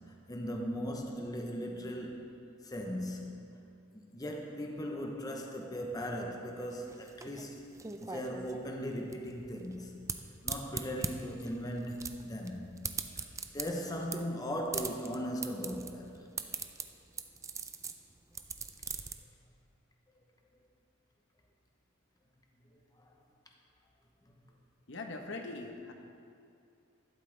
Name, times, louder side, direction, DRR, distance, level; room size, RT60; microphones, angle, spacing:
voice 1, 0.3-3.6 3.9-7.7 8.0-9.9 10.4-12.7 13.0-13.1 13.5-16.2 22.7-23.1 24.3-24.4, equal, 20° left, 1 dB, 0.8 m, -38 dB
sound 1, 6.6-19.1, right 5 dB, 15° right, 0.4 m, -41 dB
voice 2, 24.9-25.9, left 3 dB, 65° left, 3 dB, 1.0 m, -41 dB
12.0 x 11.5 x 3.3 m, 2.5 s
head